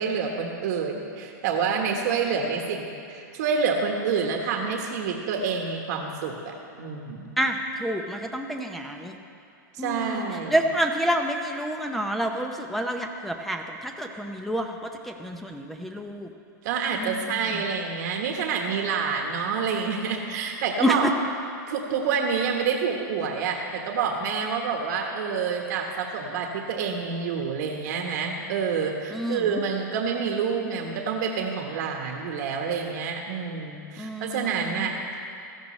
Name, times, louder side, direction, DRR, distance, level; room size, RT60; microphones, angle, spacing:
voice 1, 0.0-7.3 9.7-10.5 16.6-21.1 21.7-35.2, right 6 dB, 60° right, 2 dB, 1.3 m, -28 dB
voice 2, 7.4-9.1 9.8-16.3 17.0-17.3 20.8-21.1 29.1-29.4 34.0-34.9, equal, ahead, 3 dB, 0.7 m, -28 dB
17.0 x 13.0 x 3.2 m, 2.5 s
hypercardioid pair, 135°, 10 cm